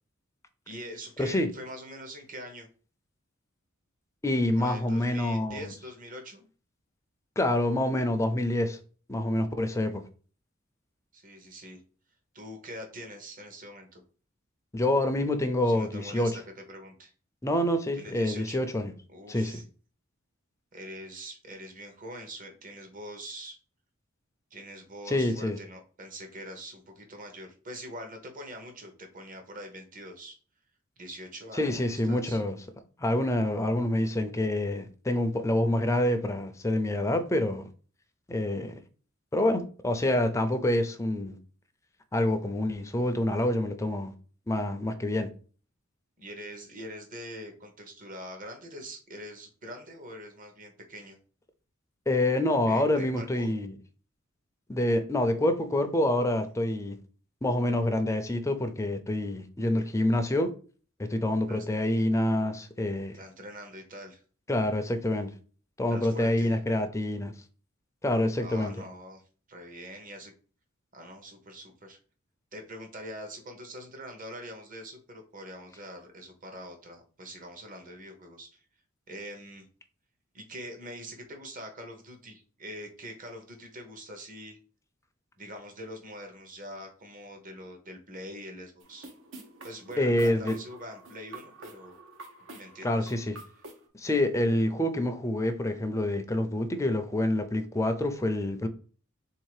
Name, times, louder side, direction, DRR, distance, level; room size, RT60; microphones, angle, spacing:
voice 1, 0.7-2.7 4.6-6.5 11.1-11.8 12.3-14.0 15.6-16.4 16.7-17.1 17.9-18.7 19.1-19.6 20.7-23.6 24.5-30.4 31.0-32.4 46.2-51.2 52.7-53.5 61.5-61.7 63.1-64.2 65.9-66.6 68.4-69.2 69.5-70.3 70.9-72.0 72.5-78.6 79.1-79.7 80.3-84.6 85.4-89.1 89.6-92.0 92.4-93.1, equal, 40° right, 1.0 m, -43 dB
voice 2, 4.2-5.7 7.4-8.8 9.1-10.0 14.7-16.3 17.4-18.9 19.3-19.5 25.1-25.6 31.5-32.6 33.0-37.6 38.3-38.7 39.3-41.4 42.1-44.1 44.5-45.3 52.1-53.7 54.7-57.0 57.4-60.5 61.0-63.1 64.5-65.3 65.8-67.3 68.0-68.7 90.0-90.6 92.8-93.4 93.9-98.7, left 1 dB, 15° left, 0.5 m, -27 dB
sound 1, 88.8-93.8, right 2 dB, 70° right, 0.9 m, -48 dB
3.8 x 2.8 x 4.7 m
head